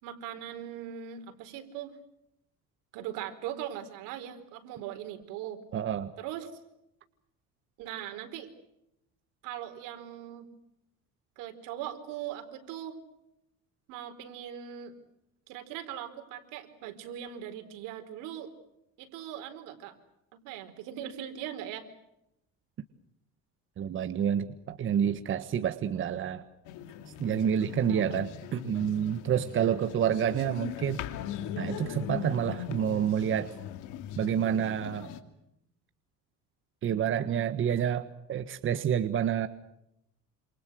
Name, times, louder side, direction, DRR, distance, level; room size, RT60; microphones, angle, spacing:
voice 1, 0.0-2.0 2.9-5.6 6.2-6.5 7.8-8.5 9.4-10.5 11.4-13.0 13.9-15.0 15.5-18.5 19.0-20.0 20.3-21.9 27.8-28.0, right 10 dB, 85° right, 7 dB, 4.6 m, -40 dB
voice 2, 5.7-6.1 23.8-26.4 27.2-31.0 31.6-33.5 34.2-35.1 36.8-39.5, right 9 dB, 40° right, 9 dB, 1.5 m, -28 dB
sound 1, 26.6-35.2, left 11 dB, 80° left, 2.8 m, -40 dB
28.5 x 27.5 x 6.4 m, 0.83 s
cardioid pair, 135°, 30 cm